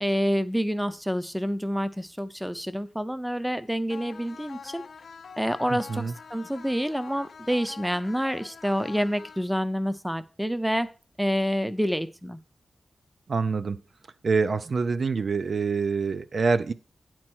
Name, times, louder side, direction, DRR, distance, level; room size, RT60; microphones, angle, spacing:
voice 1, 0.0-4.8 5.4-10.9 11.2-12.4, equal, 5° right, 12 dB, 0.5 m, -28 dB
sound 1, 3.9-9.9, left 5 dB, 75° left, 0.5 m, -45 dB
voice 2, 5.7-6.1 13.3-13.8 14.2-16.7, right 4 dB, 55° right, 11 dB, 0.5 m, -26 dB
9.5 x 4.4 x 6.0 m, 0.35 s
wide cardioid pair, 140°, 0 cm